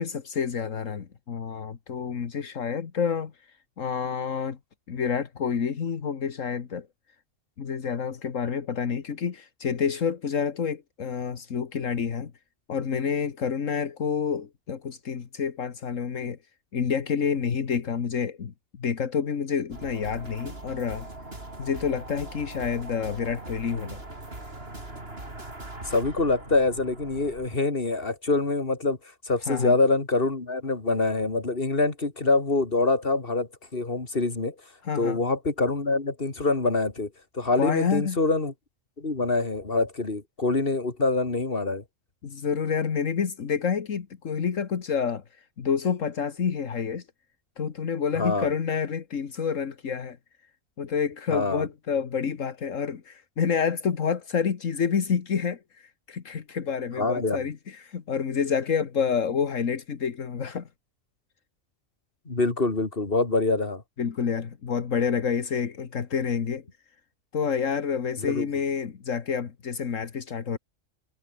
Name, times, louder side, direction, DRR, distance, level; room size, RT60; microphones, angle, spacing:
voice 1, 0.0-3.3 3.8-4.6 4.9-6.9 7.6-12.3 12.7-16.4 16.7-21.1 21.6-24.0 29.5-29.7 34.8-35.2 37.6-38.2 42.2-45.2 45.6-47.0 47.6-50.2 50.8-60.7 64.0-66.6 67.3-70.6, left 6 dB, 80° left, 1.8 m, -28 dB
sound 1, 19.7-27.6, right 2 dB, 50° right, 5.0 m, -41 dB
voice 2, 25.8-29.0 29.3-34.5 35.0-38.5 39.0-41.8 48.2-48.5 51.3-51.7 57.0-57.5 62.3-63.8 68.2-68.5, left 3 dB, 45° left, 3.3 m, -25 dB
omnidirectional pair, 1.3 m